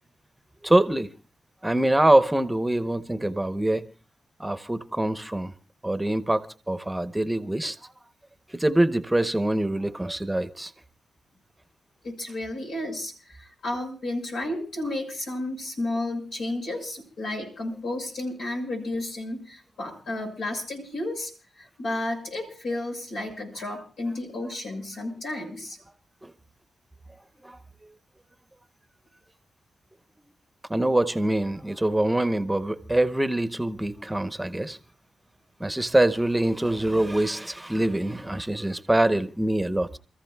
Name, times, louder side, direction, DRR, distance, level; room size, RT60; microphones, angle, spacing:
voice 1, 0.6-1.1 1.6-3.8 4.4-5.5 5.8-7.8 8.5-10.7 26.2-26.3 27.4-27.6 30.7-34.8 35.6-40.0, right 1 dB, 10° right, 0.8 m, -24 dB
voice 2, 12.0-21.3 21.6-25.8, left 1 dB, 85° left, 6.1 m, -32 dB
29.5 x 14.0 x 2.3 m
cardioid pair, 60°, 0 cm